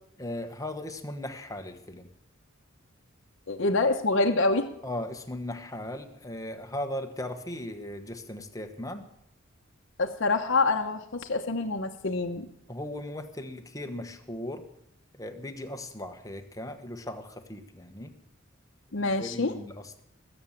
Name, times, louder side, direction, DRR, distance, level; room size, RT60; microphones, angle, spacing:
voice 1, 0.2-2.1 4.8-9.1 12.7-14.7 15.1-18.1 19.0-20.0, left 1 dB, 15° left, 6 dB, 1.2 m, -37 dB
voice 2, 3.5-4.7 10.0-12.5 18.9-19.5, left 3 dB, 60° left, 2 dB, 1.0 m, -26 dB
20.5 x 8.0 x 7.3 m, 0.77 s
head